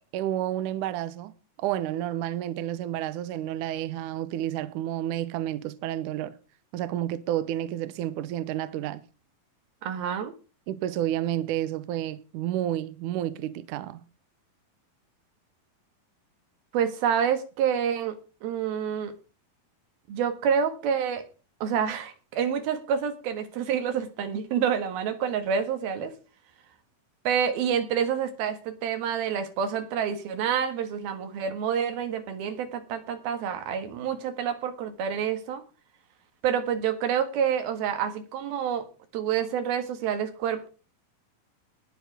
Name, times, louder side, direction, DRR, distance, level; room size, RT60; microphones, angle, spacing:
voice 1, 0.1-1.3 1.6-6.4 6.7-9.0 10.7-14.0, right 12 dB, 70° right, 2.1 m, -30 dB
voice 2, 9.8-10.3 16.7-19.1 20.1-21.2 21.6-26.1 27.3-35.6 36.4-38.9 39.1-40.7, right 8 dB, 90° right, 3.5 m, -28 dB
19.5 x 7.0 x 4.8 m
omnidirectional pair, 4.2 m